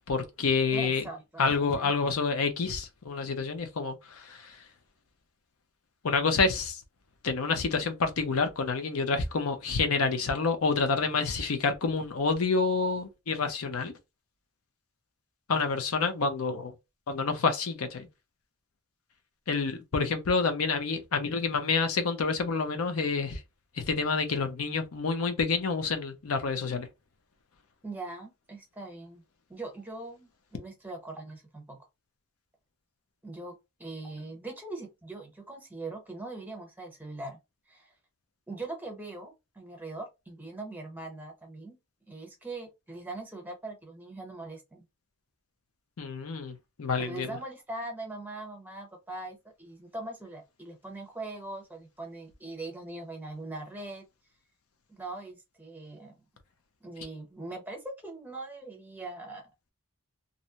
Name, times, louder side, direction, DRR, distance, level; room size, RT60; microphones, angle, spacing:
voice 1, 0.1-1.0 1.4-4.6 6.0-6.8 7.2-13.9 15.5-16.7 17.1-18.1 19.5-23.4 23.8-26.9 46.0-47.3, left 4 dB, 80° left, 0.6 m, -28 dB
voice 2, 0.7-1.9 27.8-29.2 29.5-31.8 33.2-37.4 37.7-37.9 38.5-41.8 42.1-44.8 47.0-54.0 54.9-56.2 56.8-59.7, right 2 dB, 10° right, 0.8 m, -41 dB
2.6 x 2.1 x 2.7 m
head